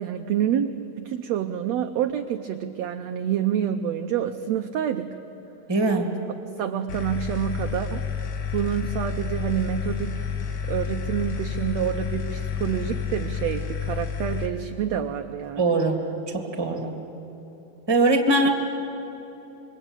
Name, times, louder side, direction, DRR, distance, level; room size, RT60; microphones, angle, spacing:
voice 1, 0.0-5.1 6.6-10.2 10.7-15.6, right 9 dB, 80° right, 7 dB, 1.5 m, -28 dB
voice 2, 5.7-6.1 15.6-16.0 16.3-17.0 17.9-18.5, right 2 dB, 10° right, 4 dB, 1.6 m, -21 dB
sound 1, 6.9-14.5, left 7 dB, 85° left, 3.3 m, -30 dB
26.0 x 23.0 x 8.9 m, 2.9 s
omnidirectional pair, 4.0 m